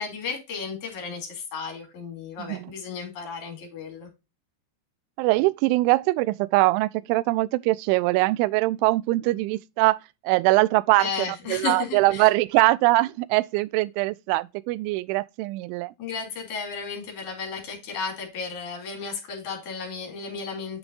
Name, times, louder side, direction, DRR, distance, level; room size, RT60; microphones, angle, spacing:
voice 1, 0.0-4.1 11.0-12.3 16.0-20.8, left 5 dB, 45° left, 3.6 m, -34 dB
voice 2, 2.4-2.7 5.2-10.0 10.2-11.1 11.5-15.9, right 20 dB, 85° right, 2.9 m, -22 dB
9.5 x 6.2 x 2.5 m
omnidirectional pair, 5.5 m